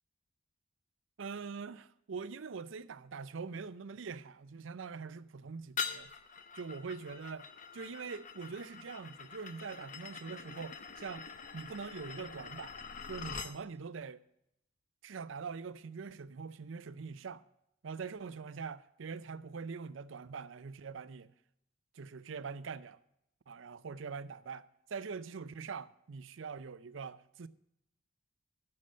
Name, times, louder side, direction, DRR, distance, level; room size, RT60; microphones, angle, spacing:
voice 1, 1.2-6.1 6.5-7.5 7.7-11.3 11.5-12.7 13.1-14.2 15.0-17.4 17.8-21.3 21.9-23.0 23.5-27.5, right 5 dB, 70° right, 0.5 m, -43 dB
sound 1, 5.8-13.6, left 6 dB, 40° left, 0.7 m, -44 dB
9.7 x 6.5 x 7.5 m
head